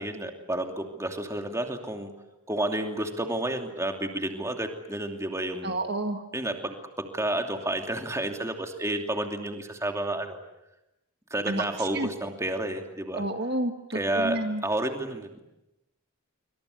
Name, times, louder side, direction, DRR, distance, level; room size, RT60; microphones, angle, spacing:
voice 1, 0.0-2.1 2.5-5.8 6.3-10.4 11.3-13.2 13.9-15.4, right 1 dB, 15° right, 4 dB, 2.7 m, -30 dB
voice 2, 5.6-6.2 11.5-11.6 11.9-12.1 13.1-14.6, right 1 dB, 50° right, 6 dB, 1.8 m, -30 dB
27.0 x 25.0 x 8.4 m, 0.93 s
head